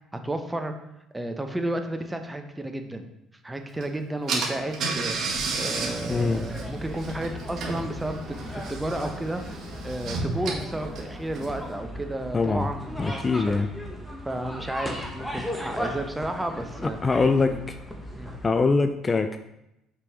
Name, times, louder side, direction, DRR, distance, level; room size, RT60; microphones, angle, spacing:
voice 1, 0.2-0.7 1.1-3.1 3.4-13.6 14.2-17.0 17.5-17.6 18.2-18.3, right 1 dB, 15° right, 6 dB, 0.8 m, -32 dB
Car / Engine, 3.8-3.9 4.3-11.7, right 4 dB, 55° right, 1.8 m, -33 dB
sound 1, 5.7-18.5, equal, 5° left, 1.4 m, -37 dB
voice 2, 6.1-6.4 12.3-12.7 13.0-13.7 17.0-17.8 18.4-19.4, left 4 dB, 30° left, 9 dB, 0.4 m, -23 dB
5.9 x 4.7 x 3.6 m, 0.87 s
supercardioid pair, 70°, 0 cm